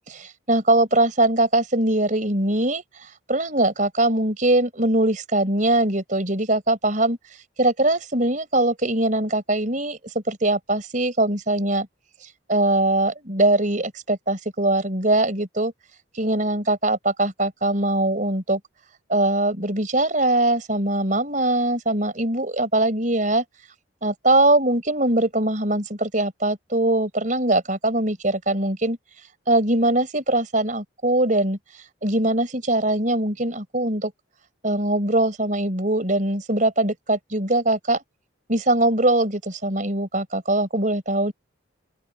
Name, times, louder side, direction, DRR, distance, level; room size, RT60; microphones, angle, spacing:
voice 1, 0.1-7.2 7.6-10.0 10.3-11.9 12.5-15.7 16.2-18.6 19.1-23.4 24.0-29.0 29.5-31.6 32.0-34.1 34.6-38.0 38.5-41.3, right 1 dB, 40° right, 5.1 m, -22 dB
open air
head